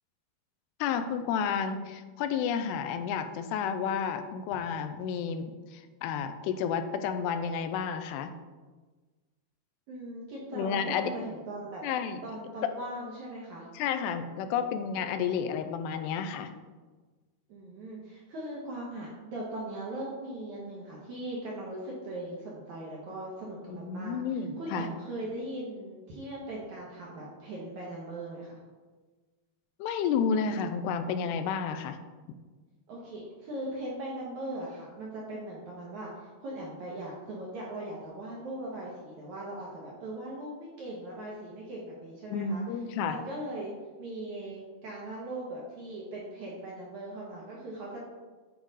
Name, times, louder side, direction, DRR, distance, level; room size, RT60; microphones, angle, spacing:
voice 1, 0.8-8.3 10.5-11.1 11.8-12.3 13.8-16.5 23.7-24.9 29.8-32.0 42.3-43.2, left 7 dB, 90° left, 9 dB, 2.7 m, -31 dB
voice 2, 9.9-11.8 12.2-13.7 17.5-24.2 24.6-28.6 32.9-42.6 43.0-43.7 44.0-48.0, right 1 dB, 70° right, -4 dB, 1.8 m, -39 dB
8.7 x 4.7 x 3.9 m, 1.3 s
omnidirectional pair, 4.6 m